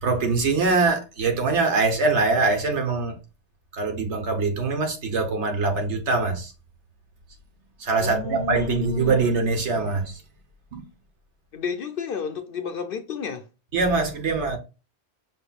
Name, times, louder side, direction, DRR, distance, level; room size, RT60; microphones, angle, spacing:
voice 1, 0.0-3.1 3.7-6.5 7.8-10.2 10.7-10.8 13.7-14.6, right 3 dB, 70° right, 1.4 m, -23 dB
voice 2, 8.0-9.2 11.5-13.4, left 7 dB, 60° left, 0.6 m, -31 dB
5.7 x 3.3 x 2.3 m
omnidirectional pair, 1.2 m